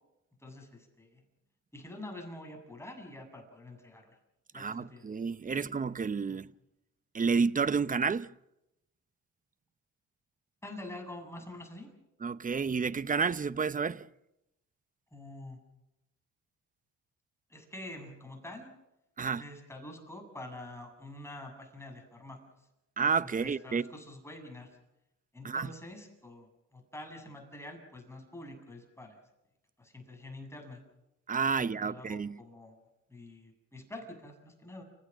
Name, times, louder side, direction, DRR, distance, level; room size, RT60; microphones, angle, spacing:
voice 1, 0.4-1.2 1.7-4.1 4.5-5.1 5.4-5.7 6.3-6.4 10.6-11.9 15.1-15.6 17.5-18.7 19.4-22.4 23.4-24.7 25.3-29.2 29.8-30.8 31.6-32.8 33.1-34.8, left 1 dB, 10° left, 7.5 m, -46 dB
voice 2, 4.5-6.5 7.1-8.3 12.2-14.1 19.2-19.4 23.0-23.9 25.4-25.7 31.3-32.4, right 5 dB, 25° right, 0.8 m, -30 dB
29.5 x 16.0 x 7.5 m
cardioid pair, 90°, 30 cm